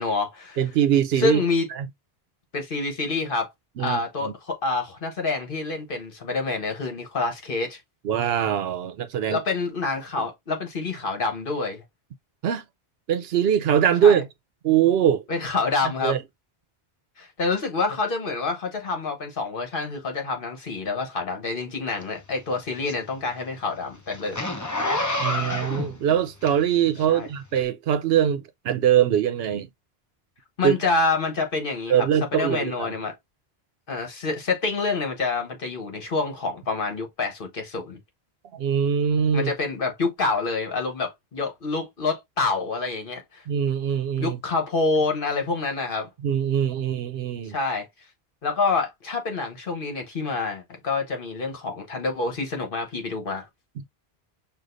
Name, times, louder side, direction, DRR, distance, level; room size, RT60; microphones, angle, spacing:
voice 1, 0.0-0.6 1.1-1.7 2.5-3.5 3.8-7.8 9.3-11.8 14.0-14.2 15.3-16.2 17.2-24.4 27.1-27.3 30.6-32.1 32.3-33.1 33.9-38.0 39.3-43.4 44.2-46.1 47.4-47.9 48.4-53.5, left 3 dB, 60° left, 1.3 m, -27 dB
voice 2, 0.6-1.4 1.8-1.9 3.8-4.3 8.0-9.4 12.4-12.6 13.1-14.3 14.6-15.2 15.8-16.2 25.2-29.7 30.6-30.7 31.9-33.0 38.5-39.5 43.5-44.4 46.2-47.6, right 9 dB, 75° right, 0.8 m, -22 dB
Zipper (clothing), 22.0-26.9 27.5-27.6, left 2 dB, 20° left, 0.6 m, -29 dB
6.3 x 2.5 x 2.5 m
omnidirectional pair, 1.1 m